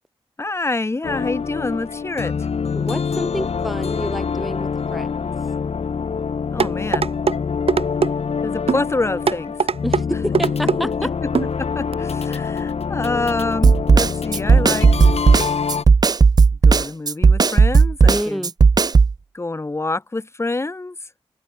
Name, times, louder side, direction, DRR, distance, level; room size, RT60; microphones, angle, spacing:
voice 1, 0.4-2.3 6.5-7.1 8.4-9.6 11.0-11.1 11.6-15.0 16.6-18.5 19.3-20.9, left 2 dB, 25° left, 1.2 m, -26 dB
sound 1, 1.0-15.8, left 6 dB, 70° left, 2.5 m, -25 dB
voice 2, 2.7-5.3 9.8-11.1 18.1-18.5, equal, ahead, 6.8 m, -28 dB
sound 2, 6.6-7.4 7.7-8.1 8.7-8.8 9.3-10.0 10.3-10.8 11.3-11.5 11.9-12.0, right 6 dB, 60° right, 1.2 m, -19 dB
Snare drum, 13.6-19.1, right 4 dB, 35° right, 0.5 m, -13 dB
open air
wide cardioid pair, 115°, 11 cm